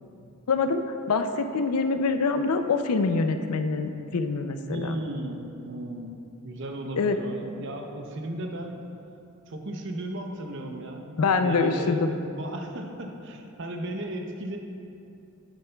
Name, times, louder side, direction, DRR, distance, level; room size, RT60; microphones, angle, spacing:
voice 1, 0.5-0.8 1.1-5.0 7.0-7.2 11.2-12.1, left 4 dB, 85° left, 8 dB, 0.5 m, -25 dB
voice 2, 4.7-6.1 6.4-8.9 9.5-11.1 11.4-14.6, right 1 dB, 55° right, 3 dB, 0.7 m, -35 dB
9.2 x 8.9 x 2.3 m, 2.8 s
head